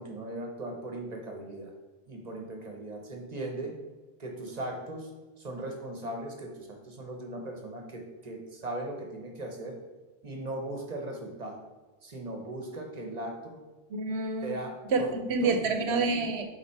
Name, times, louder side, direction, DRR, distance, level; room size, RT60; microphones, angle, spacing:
voice 1, 0.0-1.7 2.1-3.8 4.2-5.1 5.4-9.8 10.2-11.6 12.0-13.6 14.4-15.1 15.4-15.6, right 1 dB, 40° right, 2 dB, 0.9 m, -38 dB
voice 2, 13.9-14.5 14.9-16.5, right 3 dB, 70° right, 6 dB, 0.9 m, -28 dB
5.6 x 3.8 x 4.6 m, 1.2 s
omnidirectional pair, 1.2 m